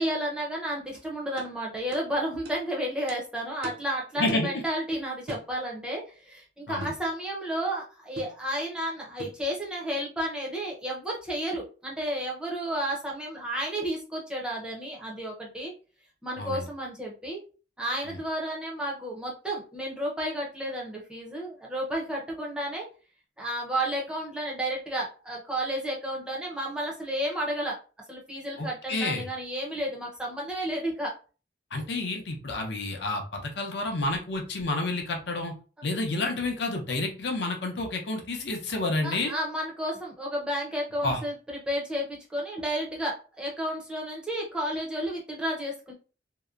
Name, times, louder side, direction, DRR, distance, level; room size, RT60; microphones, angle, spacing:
voice 1, 0.0-15.7 16.2-17.4 17.8-22.9 23.4-27.8 28.1-31.1 39.0-45.9, right 1 dB, 5° right, -3 dB, 0.6 m, -32 dB
sound 1, 0.9-1.0 1.4-1.5 1.9-2.1 2.5-2.6 3.1-3.2 3.6-3.9 4.3-4.5 5.3-5.5 6.8-7.0 8.2-8.4 9.2-9.4, right 1 dB, 55° right, 0.5 m, -40 dB
voice 2, 4.2-4.5 6.7-6.9 16.4-16.6 18.1-18.2 28.6-29.3 31.7-35.5 35.8-39.3 41.0-41.2, left 2 dB, 60° left, 2 dB, 0.6 m, -30 dB
2.7 x 2.1 x 2.4 m, 0.35 s
head